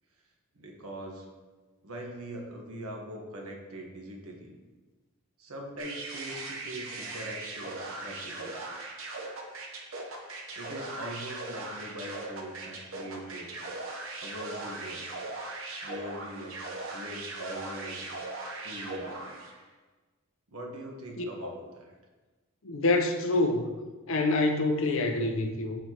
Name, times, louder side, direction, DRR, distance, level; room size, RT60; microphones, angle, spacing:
voice 1, 0.5-1.3 1.8-4.6 5.4-8.7 10.5-13.6 14.2-15.2 15.8-16.6 16.9-18.1 18.6-19.4 20.5-21.9, right 1 dB, 80° right, 1 dB, 1.3 m, -42 dB
sound 1, 5.8-19.6, right 2 dB, 60° right, 0.9 m, -39 dB
voice 2, 21.2-21.5 22.6-23.8 24.1-25.8, left 2 dB, 60° left, 5 dB, 0.7 m, -27 dB
10.5 x 4.4 x 2.9 m, 1.3 s
head